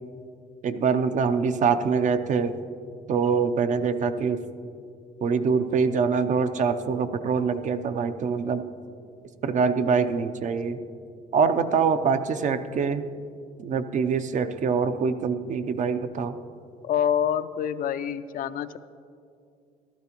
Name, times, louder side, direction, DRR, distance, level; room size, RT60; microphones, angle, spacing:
voice 1, 0.6-2.5 3.1-4.4 5.2-8.7 9.4-10.8 11.3-13.1 13.6-16.4, right 5 dB, 45° right, 10 dB, 0.6 m, -24 dB
voice 2, 16.8-18.8, left 9 dB, 55° left, 13 dB, 0.4 m, -26 dB
15.0 x 12.5 x 3.0 m, 2.4 s
cardioid pair, 110°, 17 cm